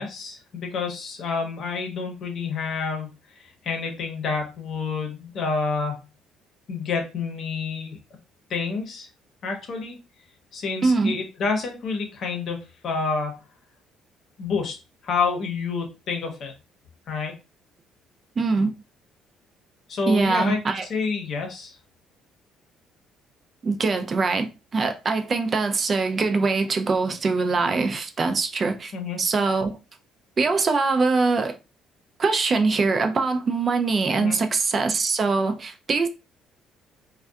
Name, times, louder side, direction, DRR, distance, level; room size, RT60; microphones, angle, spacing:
voice 1, 0.0-3.1 3.4-6.0 6.7-8.0 8.5-9.1 9.4-10.0 10.5-12.6 12.8-13.4 14.4-14.8 15.0-16.5 17.1-17.3 19.9-21.8 28.9-29.2 34.2-34.4, left 4 dB, 55° left, 0.8 m, -28 dB
voice 2, 10.8-11.1 18.4-18.7 20.1-20.9 23.6-28.9 29.2-29.8 30.4-31.6 32.2-36.1, right 4 dB, 35° right, 0.4 m, -23 dB
2.6 x 2.2 x 2.2 m
cardioid pair, 110°, 0 cm